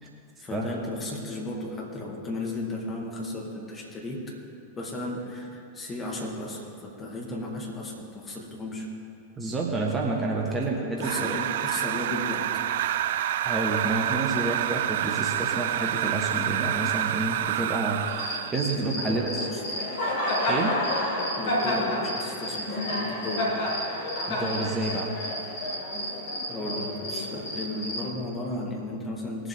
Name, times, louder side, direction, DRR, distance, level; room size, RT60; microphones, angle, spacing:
voice 1, 0.4-4.4 4.8-8.9 10.5-10.6 11.0-12.6 18.8-19.6 21.4-23.7 26.5-29.5, left 1 dB, 20° left, -1 dB, 2.0 m, -34 dB
voice 2, 9.4-11.3 13.4-19.3 20.5-20.7 24.3-25.2, right 2 dB, 15° right, -1 dB, 1.4 m, -29 dB
sound 1, 11.0-18.6, right 11 dB, 55° right, 0.3 m, -28 dB
Cricket, 18.1-28.1, left 1 dB, 50° left, 2.2 m, -30 dB
20.0 x 7.4 x 3.7 m, 2.6 s
figure-of-eight pair, 90°, 0 cm